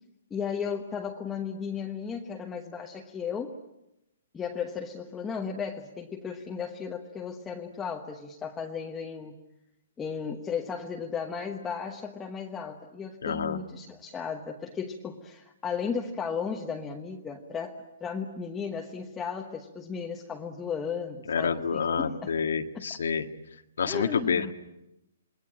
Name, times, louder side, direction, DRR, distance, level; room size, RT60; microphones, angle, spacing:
voice 1, 0.3-3.6 4.3-9.4 10.0-22.3 22.7-22.9 23.9-24.5, left 6 dB, 10° left, 1 dB, 1.2 m, -35 dB
voice 2, 13.2-13.6 21.3-23.3 23.8-24.5, left 6 dB, 85° left, 6 dB, 1.9 m, -28 dB
27.5 x 21.0 x 8.8 m, 0.89 s
hypercardioid pair, 165°, 0 cm